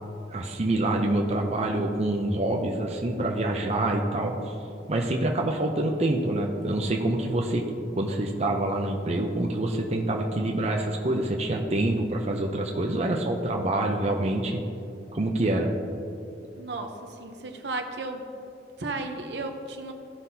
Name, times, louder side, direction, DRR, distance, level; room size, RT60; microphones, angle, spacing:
voice 1, 0.3-4.3 4.9-14.6 15.1-15.7, right 1 dB, 35° right, 1 dB, 0.6 m, -26 dB
voice 2, 16.6-18.2 18.8-19.9, right 2 dB, 70° right, 5 dB, 0.8 m, -34 dB
15.0 x 5.7 x 2.8 m, 2.7 s
head